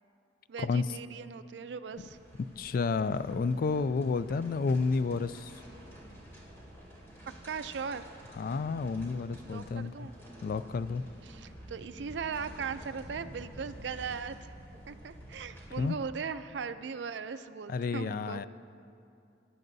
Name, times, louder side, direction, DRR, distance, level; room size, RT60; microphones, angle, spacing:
voice 1, 0.5-2.2 7.4-8.1 9.5-10.1 11.2-14.5 14.9-18.4, right 6 dB, 75° right, 12 dB, 0.4 m, -39 dB
sound 1, 1.9-15.9, right 1 dB, 15° left, 3.0 m, -50 dB
voice 2, 2.6-5.5 8.4-10.1 10.4-11.0 15.8-16.0 17.7-18.5, left 4 dB, 50° left, 15 dB, 0.3 m, -30 dB
21.0 x 10.5 x 2.7 m, 2.5 s
head